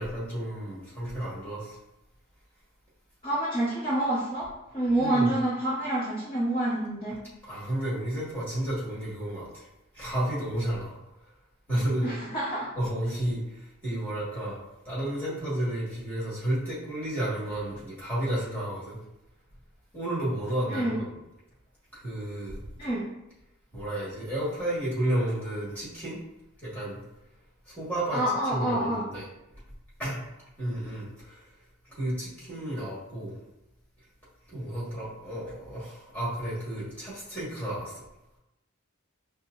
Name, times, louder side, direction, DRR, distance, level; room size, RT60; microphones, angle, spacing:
voice 1, 0.0-1.8 5.0-5.3 7.4-9.6 9.9-11.0 11.7-12.1 12.7-13.4 13.8-14.6 14.8-19.0 19.9-21.1 21.9-22.6 23.7-26.2 26.6-27.0 27.7-28.2 28.5-29.3 30.0-30.2 30.6-31.4 32.0-33.4 34.5-37.9, right 1 dB, 10° left, -8 dB, 1.4 m, -31 dB
voice 2, 3.2-4.5 4.7-7.2 12.0-12.7 20.7-20.9 22.8-23.0 28.1-29.0, right 1 dB, 25° left, -10 dB, 0.7 m, -27 dB
5.6 x 2.0 x 2.4 m, 0.91 s
head